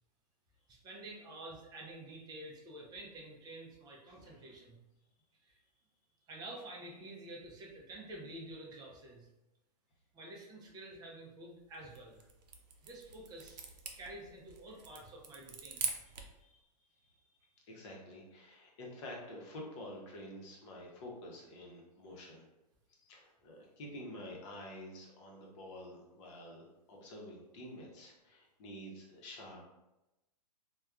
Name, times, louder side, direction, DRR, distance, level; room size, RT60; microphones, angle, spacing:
voice 1, 0.7-4.8 5.4-5.6 6.3-9.3 10.1-12.2 12.8-13.6 14.0-15.9, right 1 dB, 20° right, -2 dB, 0.5 m, -49 dB
voice 2, 4.0-4.4 16.4-16.6 17.0-17.1 17.4-22.5 22.9-29.6, left 1 dB, 45° left, -1 dB, 0.8 m, -49 dB
sound 1, 11.7-16.4, right 6 dB, 75° right, 0.5 m, -44 dB
3.4 x 2.3 x 2.3 m, 0.96 s
hypercardioid pair, 125°, 21 cm